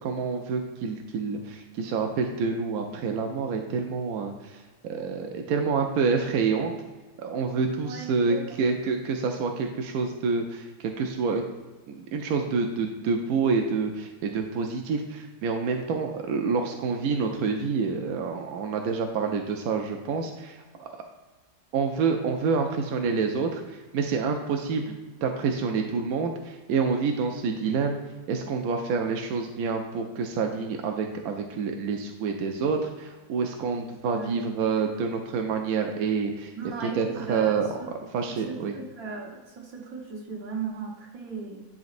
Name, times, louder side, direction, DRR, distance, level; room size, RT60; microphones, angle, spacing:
voice 1, 0.0-6.7 7.2-11.4 11.9-21.0 21.7-24.9 25.2-28.0 28.3-36.5 36.8-37.7 38.1-38.7, right 5 dB, 70° right, 3 dB, 0.9 m, -28 dB
voice 2, 7.8-8.6 34.1-34.5 36.5-37.9 38.2-41.7, right 5 dB, 50° right, -1 dB, 1.6 m, -37 dB
10.5 x 4.1 x 2.5 m, 1.2 s
omnidirectional pair, 2.0 m